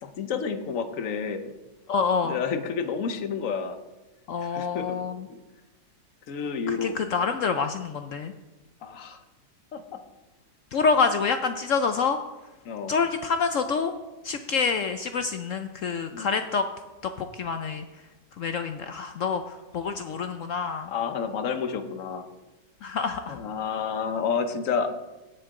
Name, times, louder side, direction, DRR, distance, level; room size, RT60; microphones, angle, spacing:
voice 1, 0.0-1.5 2.2-3.8 4.4-5.4 6.3-7.0 8.8-9.2 9.7-10.0 12.6-12.9 16.1-16.4 20.9-22.3 23.3-24.9, left 6 dB, 55° left, 8 dB, 1.1 m, -30 dB
voice 2, 1.9-2.4 4.3-5.3 6.7-8.3 10.7-12.2 12.9-13.9 14.2-16.6 17.0-17.8 18.4-20.9 22.8-23.4, left 5 dB, 70° left, 8 dB, 0.7 m, -27 dB
17.5 x 6.7 x 3.7 m, 1.1 s
omnidirectional pair, 1.9 m